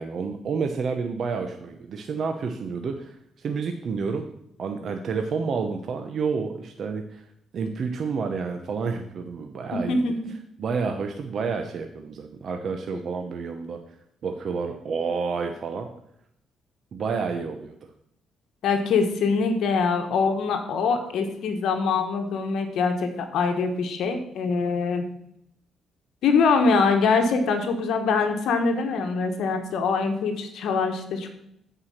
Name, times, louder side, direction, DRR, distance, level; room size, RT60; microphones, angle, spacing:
voice 1, 0.0-4.3 4.6-10.0 10.3-14.0 14.2-15.9 16.9-17.8, right 5 dB, 55° right, 5 dB, 0.8 m, -30 dB
voice 2, 9.7-10.3 18.6-25.0 26.2-31.3, left 4 dB, 75° left, 5 dB, 1.2 m, -23 dB
8.8 x 4.8 x 6.4 m, 0.75 s
cardioid pair, 90°, 0 cm